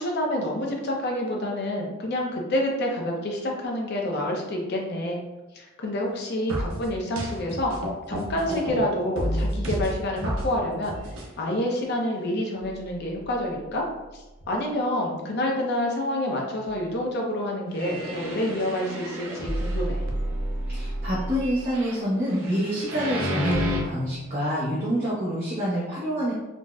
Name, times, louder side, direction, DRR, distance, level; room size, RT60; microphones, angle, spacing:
voice 1, 0.0-5.2 5.5-7.7 8.1-11.0 11.4-13.8 14.1-20.0, left 1 dB, 55° left, -1 dB, 0.6 m, -28 dB
sound 1, 6.5-8.8 9.2-10.5 10.8-11.3 11.8-11.9 12.6-12.7 13.2-13.3 17.7-23.8, equal, 80° right, 0.5 m, -30 dB
voice 2, 20.7-26.3, equal, 45° right, -9 dB, 0.8 m, -27 dB
3.9 x 2.1 x 2.3 m, 1.1 s
head